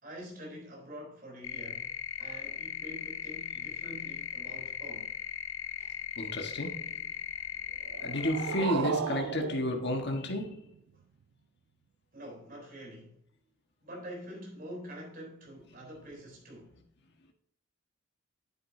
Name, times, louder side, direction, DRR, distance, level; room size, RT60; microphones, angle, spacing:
voice 1, 0.0-5.1 12.1-13.2 13.8-16.7, equal, 45° right, 3.5 m, -46 dB
sound 1, 1.4-8.6, left 10 dB, 75° left, 0.6 m, -38 dB
voice 2, 6.2-7.1 8.0-10.7, left 1 dB, 55° left, 1.5 m, -32 dB
sound 2, 7.8-10.8, right 8 dB, 75° right, 0.3 m, -36 dB
9.7 x 8.2 x 2.7 m
head